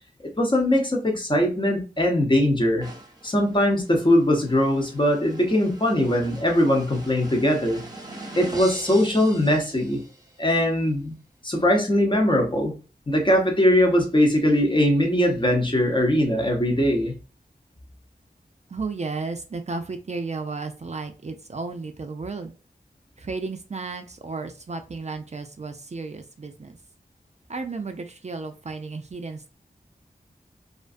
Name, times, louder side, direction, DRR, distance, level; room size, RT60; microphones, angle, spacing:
voice 1, 0.4-2.9 3.2-7.8 8.4-10.0 10.4-11.1 11.4-12.7 13.1-17.1, left 1 dB, 30° left, 2 dB, 0.8 m, -21 dB
sound 1, 2.8-10.4, right 1 dB, 25° right, 0.9 m, -42 dB
voice 2, 18.7-22.5 23.2-26.8 27.5-29.5, right 4 dB, 45° right, 6 dB, 0.4 m, -33 dB
2.4 x 2.2 x 2.4 m, 0.35 s
cardioid pair, 45°, 17 cm